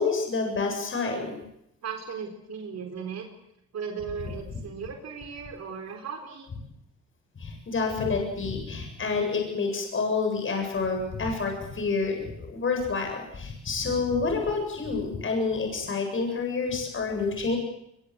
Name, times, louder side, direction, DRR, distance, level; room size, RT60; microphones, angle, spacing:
voice 1, 0.0-1.3 7.4-17.6, left 4 dB, 45° left, 3 dB, 7.8 m, -28 dB
voice 2, 1.8-3.3 3.7-6.5, right 6 dB, 60° right, 3 dB, 4.2 m, -36 dB
23.0 x 23.0 x 8.1 m, 0.81 s
cardioid pair, 90°, 30 cm